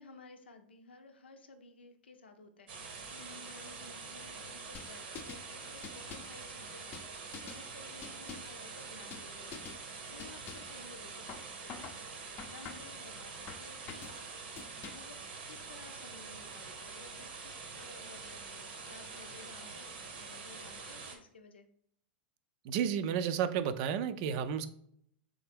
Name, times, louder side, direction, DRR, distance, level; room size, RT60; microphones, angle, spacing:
voice 1, 0.0-14.5 14.9-21.7, left 3 dB, 90° left, 6 dB, 0.6 m, -55 dB
sound 1, 2.7-21.2, right 4 dB, 75° right, 0.9 m, -46 dB
sound 2, 4.7-5.5 5.8-6.4 6.9-7.6 8.0-8.6 9.1-9.3 9.5-9.8 10.2-10.8 11.3-12.0 12.4-13.0 13.5-14.2 14.6-15.2, left 6 dB, 35° left, 0.6 m, -47 dB
voice 2, 22.6-24.7, right 8 dB, 55° right, 12 dB, 0.4 m, -32 dB
3.9 x 3.5 x 3.4 m, 0.68 s
hypercardioid pair, 105°, 6 cm